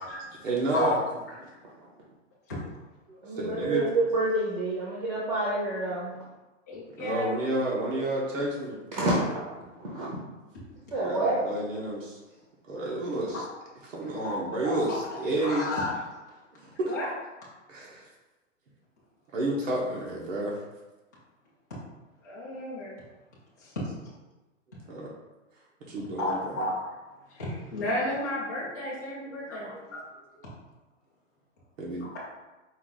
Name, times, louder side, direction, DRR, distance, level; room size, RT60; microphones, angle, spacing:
voice 1, 0.4-1.0 3.1-3.9 7.0-8.8 11.0-12.2 12.7-13.4 13.9-15.7 16.6-16.9 17.7-18.1 19.3-20.5 24.9-25.1 25.9-26.6 29.2-29.3 29.7-29.8 31.8-32.0, right 1 dB, 85° right, -4 dB, 1.2 m, -30 dB
voice 2, 3.2-6.1 9.0-9.3 9.8-10.2 10.9-11.5, right 2 dB, 35° right, -5 dB, 0.8 m, -28 dB
voice 3, 6.7-7.2 14.2-14.3 14.6-15.0 15.4-15.9 16.9-17.1 22.2-23.0 23.6-23.7 26.2-26.9 27.3-30.0, left 1 dB, 15° left, -8 dB, 0.5 m, -32 dB
4.6 x 2.5 x 3.9 m, 1.1 s
hypercardioid pair, 175°, 38 cm